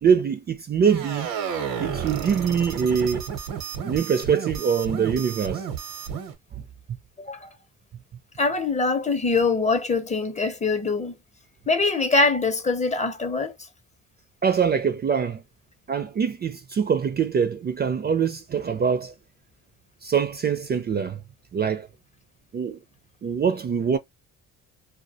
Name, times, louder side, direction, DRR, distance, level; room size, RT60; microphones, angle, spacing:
voice 1, 0.0-1.3 1.8-3.3 3.8-5.7 14.4-15.4 15.9-19.1 20.0-21.2 21.5-21.9 22.5-22.8 23.2-24.0, right 7 dB, 30° right, 0.4 m, -23 dB
sound 1, 0.8-6.3, right 7 dB, 80° right, 0.8 m, -32 dB
voice 2, 7.2-7.5 8.4-11.1 11.7-13.5, left 3 dB, 20° left, 0.5 m, -23 dB
2.2 x 2.1 x 2.6 m
cardioid pair, 85°, 33 cm